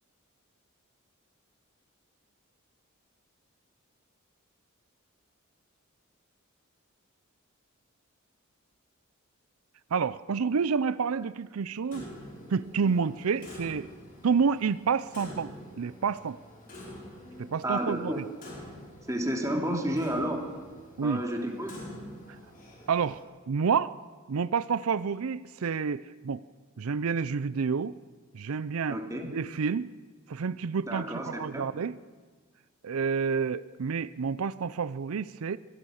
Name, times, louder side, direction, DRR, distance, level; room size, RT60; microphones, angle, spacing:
voice 1, 9.9-12.1 12.5-13.9 14.2-16.4 17.4-18.2 21.0-21.2 22.3-22.4 22.9-24.0 24.3-26.4 26.8-28.0 28.3-29.0 29.3-29.9 30.3-32.0 32.8-35.6, right 5 dB, 85° right, 17 dB, 0.5 m, -29 dB
Clock, 11.9-23.2, left 1 dB, 40° left, 5.3 m, -47 dB
voice 2, 17.6-18.2 19.1-20.4 21.0-21.8 28.9-29.3 30.9-31.7, right 1 dB, 15° right, 1 dB, 2.9 m, -31 dB
24.0 x 17.5 x 6.5 m, 1.4 s
head